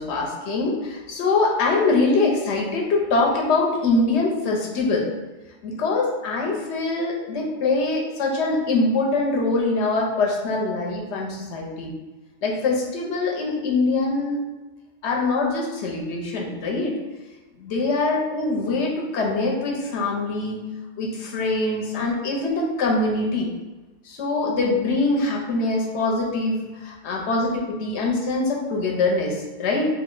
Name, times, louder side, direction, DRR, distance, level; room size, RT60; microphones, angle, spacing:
voice 1, 0.0-5.1 5.6-11.9 12.4-14.4 15.0-16.9 17.6-20.6 21.0-23.5 24.1-29.9, left 3 dB, 70° left, -1 dB, 0.9 m, -23 dB
2.6 x 2.1 x 3.7 m, 1.2 s
omnidirectional pair, 1.3 m